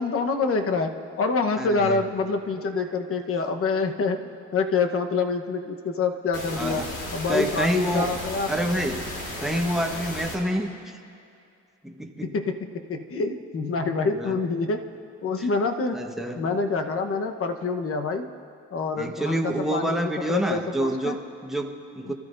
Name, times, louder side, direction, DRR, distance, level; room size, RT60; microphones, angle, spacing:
voice 1, 0.0-8.5 12.2-14.8 15.2-16.0 16.4-18.3 18.7-21.2 22.1-22.2, left 4 dB, 45° left, 5 dB, 1.2 m, -26 dB
voice 2, 1.6-2.0 6.6-6.9 7.3-8.2 8.5-9.1 9.4-11.0 11.8-12.3 14.0-14.4 15.4-15.5 15.9-16.5 19.0-22.1, right 1 dB, ahead, 2 dB, 1.3 m, -28 dB
sound 1, 6.3-10.3, left 1 dB, 85° left, 2.7 m, -35 dB
27.5 x 13.5 x 2.7 m, 2.5 s
supercardioid pair, 80°, 31 cm